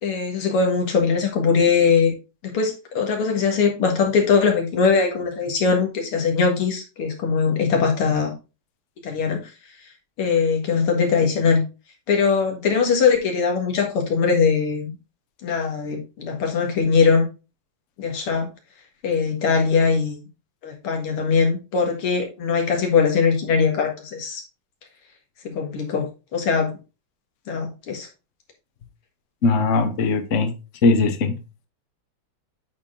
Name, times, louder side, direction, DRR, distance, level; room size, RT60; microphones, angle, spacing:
voice 1, 0.0-2.1 2.5-8.3 9.0-9.4 10.2-11.6 12.1-14.9 15.4-17.2 18.0-18.5 19.0-20.2 20.6-24.4 25.4-26.7 27.5-28.1, left 5 dB, 80° left, 2.6 m, -21 dB
voice 2, 29.4-30.5 30.8-31.3, left 3 dB, 45° left, 1.0 m, -19 dB
8.7 x 4.4 x 3.7 m
omnidirectional pair, 2.4 m